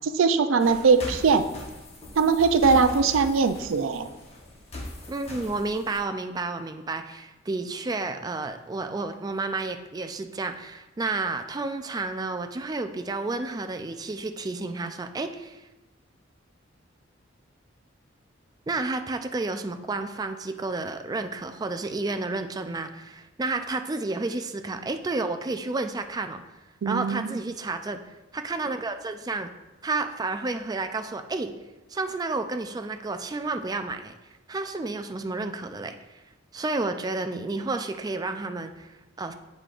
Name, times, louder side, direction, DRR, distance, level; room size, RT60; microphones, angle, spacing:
voice 1, 0.0-1.4 2.2-4.1 26.8-27.4, right 5 dB, 90° right, 9 dB, 0.4 m, -21 dB
sound 1, 0.6-6.0, left 1 dB, 35° left, 1.0 m, -40 dB
voice 2, 5.1-15.6 18.7-26.4 26.9-29.5 29.8-31.5 31.9-34.1 34.5-36.2 36.5-39.3, right 3 dB, 20° right, 7 dB, 0.3 m, -31 dB
7.6 x 5.0 x 2.4 m, 1.1 s
head